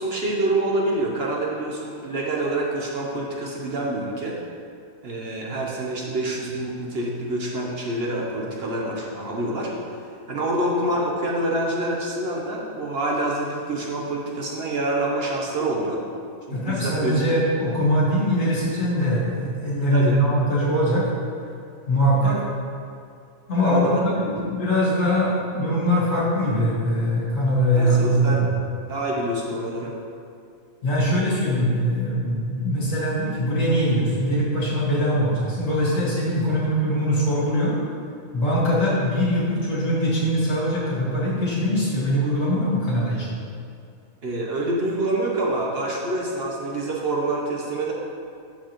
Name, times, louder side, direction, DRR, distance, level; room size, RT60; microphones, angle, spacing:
voice 1, 0.0-4.4 5.0-9.7 10.0-16.0 16.5-17.4 19.9-20.2 22.2-22.4 23.6-24.0 24.4-24.5 27.7-28.4 28.9-29.9 44.2-47.9, right 1 dB, 50° right, -2 dB, 1.0 m, -26 dB
voice 2, 16.5-21.1 21.9-22.4 23.5-28.5 30.8-37.8 38.3-43.3, equal, 70° left, -7 dB, 2.3 m, -22 dB
11.5 x 4.8 x 3.0 m, 2.3 s
omnidirectional pair, 1.4 m